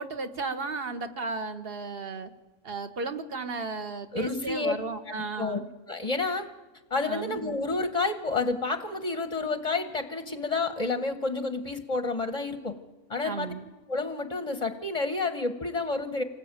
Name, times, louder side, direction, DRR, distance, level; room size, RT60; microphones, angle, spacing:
voice 1, 0.0-2.3 2.6-5.7 7.1-7.4 13.2-13.6, right 3 dB, 40° right, 9 dB, 1.5 m, -34 dB
voice 2, 4.1-4.7 5.1-5.6 5.9-6.5 6.9-12.7 13.1-13.5 13.9-16.2, left 3 dB, 25° left, 8 dB, 1.0 m, -29 dB
26.5 x 19.0 x 8.9 m, 1.2 s
omnidirectional pair, 1.6 m